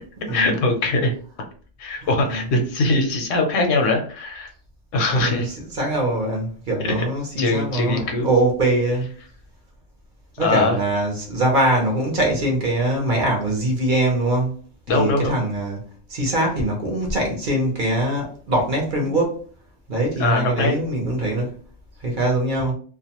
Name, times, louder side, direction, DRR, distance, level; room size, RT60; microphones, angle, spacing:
voice 1, 0.3-1.1 1.8-4.5 4.9-5.5 7.4-8.3 10.4-10.8 14.9-15.4 20.2-20.7, left 2 dB, 80° left, 1.0 m, -21 dB
voice 2, 2.0-2.4 5.1-9.1 10.4-14.5 14.9-15.8 16.1-19.5 19.9-21.6 22.0-22.7, right 1 dB, 50° right, 0.8 m, -22 dB
2.5 x 2.1 x 2.8 m
omnidirectional pair, 1.3 m